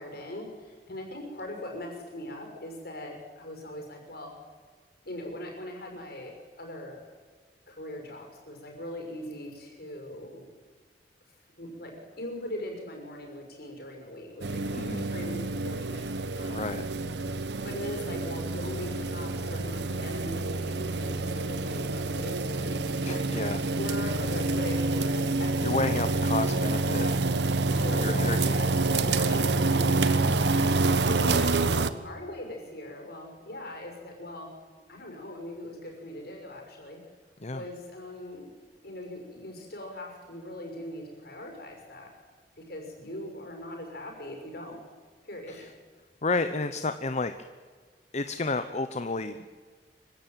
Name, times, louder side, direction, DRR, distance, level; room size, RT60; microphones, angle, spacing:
voice 1, 0.0-4.3 5.0-7.0 7.7-10.4 11.6-16.0 16.3-16.6 17.6-22.8 23.7-26.0 27.7-30.7 31.2-34.5 34.9-37.0 37.5-38.5 38.8-42.1 42.6-44.8 45.2-45.7, left 1 dB, 60° left, 2 dB, 6.2 m, -40 dB
sound 1, 14.4-31.9, right 3 dB, 75° right, 1.1 m, -27 dB
voice 2, 14.7-15.1 16.5-16.9 23.0-23.7 25.6-27.1 28.0-28.6 28.9-29.1 31.1-31.4 37.4-37.6 45.5-45.7 46.2-47.3 48.1-49.6, left 3 dB, 40° left, 10 dB, 0.9 m, -31 dB
25.0 x 16.0 x 9.1 m, 1.5 s
head